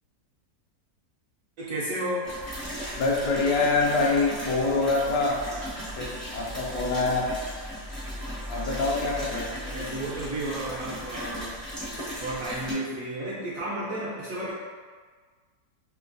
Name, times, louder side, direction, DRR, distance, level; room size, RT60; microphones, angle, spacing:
voice 1, 1.6-2.3 9.6-14.5, right 1 dB, 65° right, -7 dB, 0.9 m, -33 dB
sound 1, 2.2-12.7, equal, ahead, 0.5 m, -36 dB
voice 2, 3.0-5.5 6.0-7.3 8.5-9.6, left 3 dB, 80° left, -2 dB, 1.2 m, -25 dB
3.2 x 2.9 x 2.5 m, 1.5 s
omnidirectional pair, 1.8 m